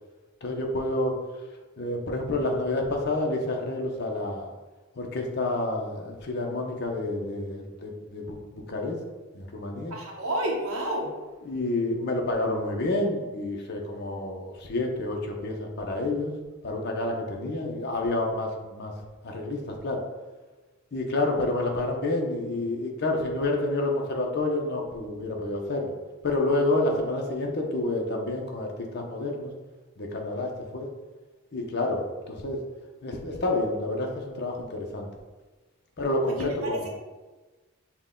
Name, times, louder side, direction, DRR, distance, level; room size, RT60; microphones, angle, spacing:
voice 1, 0.4-1.1 1.8-4.5 5.0-9.0 9.3-9.9 11.4-16.3 16.6-18.9 19.2-20.0 20.9-25.9 26.2-28.7 28.9-29.5 30.0-30.9 31.5-32.6 33.0-35.1 36.0-36.8, left 2 dB, 50° left, 1 dB, 0.6 m, -29 dB
voice 2, 9.9-11.1 36.3-36.9, right 1 dB, 75° right, -1 dB, 0.7 m, -30 dB
5.9 x 2.2 x 3.6 m, 1.2 s
head